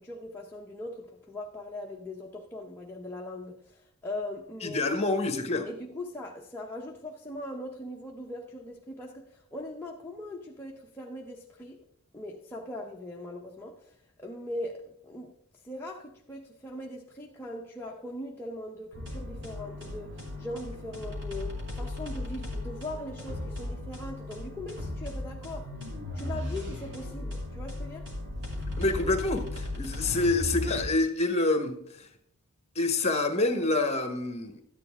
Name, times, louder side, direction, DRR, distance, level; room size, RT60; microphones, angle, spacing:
voice 1, 0.0-5.0 5.6-11.8 12.1-13.9 14.2-15.3 15.6-25.7 26.1-28.1, left 1 dB, 10° left, 0.8 m, -40 dB
voice 2, 4.6-5.7 28.8-32.1 32.7-34.6, left 2 dB, 30° left, 1.2 m, -27 dB
sound 1, 18.9-30.9, left 1 dB, 55° right, 2.8 m, -36 dB
12.5 x 9.5 x 3.6 m
head